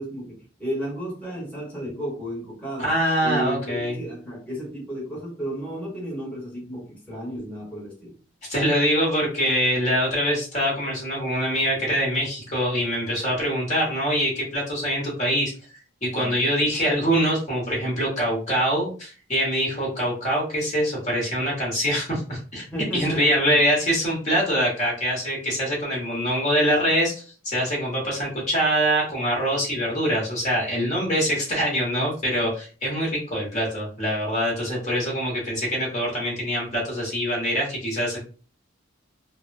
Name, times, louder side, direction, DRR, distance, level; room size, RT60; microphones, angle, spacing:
voice 1, 0.0-2.9 3.2-8.1 16.2-16.5 22.7-23.4, right 1 dB, 10° left, 1.1 m, -33 dB
voice 2, 2.8-4.0 8.5-15.5 16.0-22.6 22.9-38.2, equal, 35° left, 1.1 m, -24 dB
3.0 x 2.0 x 2.5 m
head